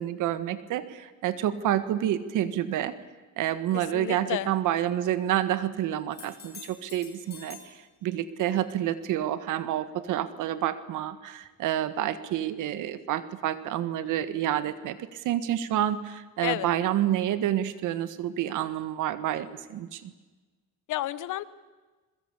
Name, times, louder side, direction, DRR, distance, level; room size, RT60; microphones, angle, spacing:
voice 1, 0.0-2.9 3.4-7.7 8.0-20.1, right 11 dB, 90° right, 13 dB, 1.6 m, -28 dB
voice 2, 3.9-4.5 16.4-16.7 20.9-21.4, left 14 dB, 85° left, 17 dB, 1.1 m, -30 dB
sound 1, 6.1-7.8 11.4-11.5, left 6 dB, 35° left, 7.6 m, -47 dB
27.5 x 22.0 x 8.3 m, 1.3 s
cardioid pair, 90°, 30 cm